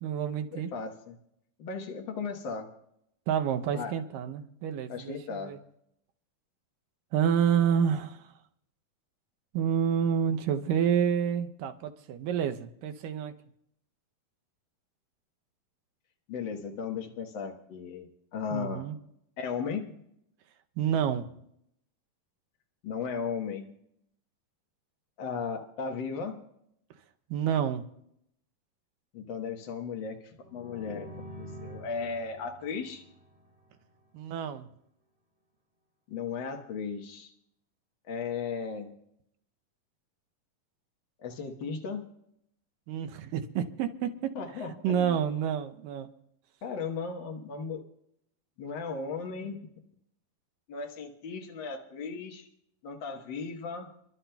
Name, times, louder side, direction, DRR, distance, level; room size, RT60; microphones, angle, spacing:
voice 1, 0.0-0.7 3.3-5.6 7.1-8.2 9.5-13.3 18.5-19.0 20.8-21.3 27.3-27.8 34.1-34.7 42.9-46.1, right 8 dB, 80° right, 7 dB, 2.4 m, -29 dB
voice 2, 0.5-1.2 1.6-2.7 3.7-3.9 4.9-5.5 16.3-18.8 19.4-19.9 22.8-23.7 25.2-26.4 29.1-33.0 36.1-37.3 38.1-38.9 41.2-42.1 44.3-45.2 46.6-47.8 48.6-49.6 50.7-52.5 52.8-53.9, left 5 dB, 60° left, 2 dB, 1.2 m, -36 dB
sound 1, 30.4-34.1, equal, 20° right, 3.2 m, -47 dB
30.0 x 11.5 x 2.3 m, 0.74 s
omnidirectional pair, 3.9 m